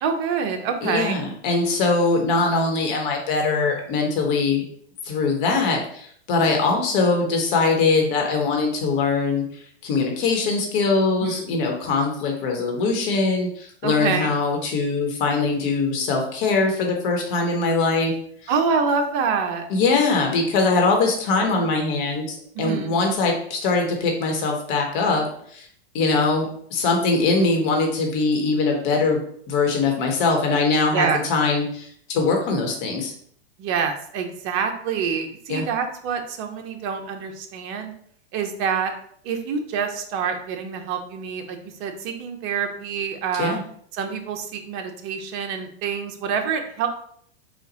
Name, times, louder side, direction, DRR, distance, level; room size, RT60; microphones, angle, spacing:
voice 1, 0.0-1.2 11.2-11.6 13.8-14.3 18.5-19.7 22.5-23.0 30.9-31.2 33.6-37.9 38.3-38.9 39.2-43.6 43.9-46.9, right 6 dB, 40° right, 5 dB, 0.8 m, -26 dB
voice 2, 0.8-4.6 5.0-18.1 18.4-18.5 19.7-25.7 25.9-33.1 35.5-35.6 43.4-43.6, left 3 dB, 50° left, 2 dB, 1.3 m, -22 dB
4.1 x 2.5 x 4.0 m, 0.63 s
hypercardioid pair, 120°, 33 cm